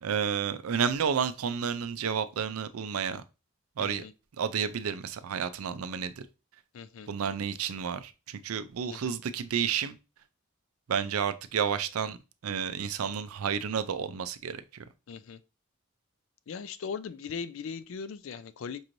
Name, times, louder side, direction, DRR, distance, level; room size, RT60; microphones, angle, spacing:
voice 1, 0.0-3.2 3.8-4.0 4.4-6.1 7.1-10.0 10.9-12.2 12.4-14.8, right 7 dB, 85° right, 0.4 m, -31 dB
voice 2, 3.8-4.1 6.7-7.1 8.8-9.1 15.1-15.4 16.5-18.8, left 6 dB, 65° left, 0.4 m, -39 dB
5.4 x 3.0 x 2.5 m
head